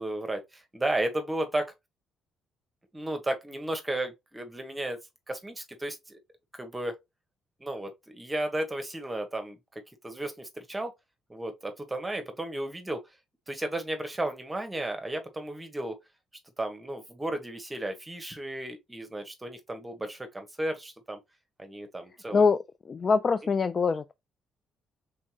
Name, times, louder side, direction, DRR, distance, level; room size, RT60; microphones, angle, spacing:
voice 1, 0.0-1.7 2.9-5.0 5.3-6.2 6.5-7.0 7.6-10.9 11.3-13.0 13.5-16.0 16.6-21.2 21.6-22.4, right 1 dB, 15° right, 1.1 m, -34 dB
voice 2, 22.9-24.1, left 5 dB, 40° left, 0.3 m, -23 dB
4.4 x 3.7 x 2.8 m
cardioid pair, 85°, 0 cm